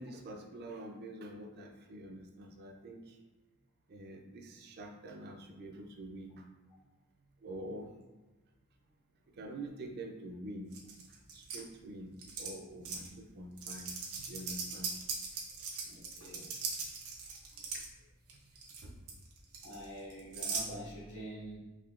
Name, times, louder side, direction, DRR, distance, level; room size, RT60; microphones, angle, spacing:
voice 1, 0.0-3.0 3.9-6.3 7.4-7.9 9.4-10.7 11.3-12.1 12.4-13.9 14.2-14.9 17.7-17.8 18.8-18.9, right 1 dB, 45° right, 3 dB, 0.4 m, -46 dB
sound 1, 10.7-11.6 12.2-12.5 12.8-13.1 13.6-17.9 18.3-18.8 19.1-20.7, right 5 dB, 85° right, 0.7 m, -39 dB
voice 2, 15.8-16.5 19.6-21.6, equal, 60° left, -6 dB, 1.1 m, -46 dB
3.6 x 2.7 x 2.3 m, 1.2 s
head